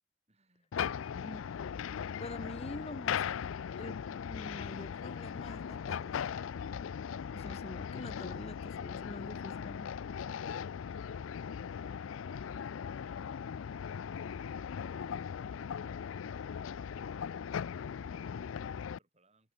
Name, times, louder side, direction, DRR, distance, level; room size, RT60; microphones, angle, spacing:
voice 1, 0.3-1.5 10.8-15.7 16.3-19.5, right 2 dB, 35° right, 8.0 m, -72 dB
sound 1, 0.7-19.0, left 7 dB, 80° left, 0.4 m, -39 dB
voice 2, 2.2-3.3 3.7-6.2 7.3-9.9, left 2 dB, 30° left, 1.2 m, -45 dB
head